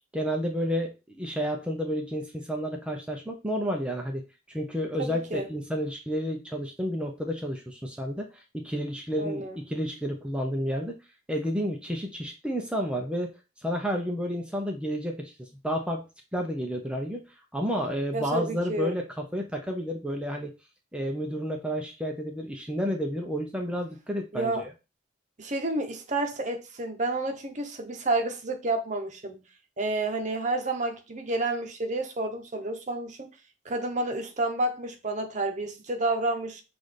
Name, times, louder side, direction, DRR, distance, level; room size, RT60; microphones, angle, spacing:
voice 1, 0.1-4.2 4.5-10.9 11.3-13.3 13.6-16.1 16.3-17.2 17.5-20.5 20.9-24.7, equal, 5° right, 0.6 m, -31 dB
voice 2, 5.0-5.5 9.2-9.6 18.1-19.0 24.3-24.7 25.4-29.4 29.8-33.3 33.6-36.6, right 2 dB, 40° right, 0.8 m, -30 dB
6.1 x 2.5 x 3.3 m
head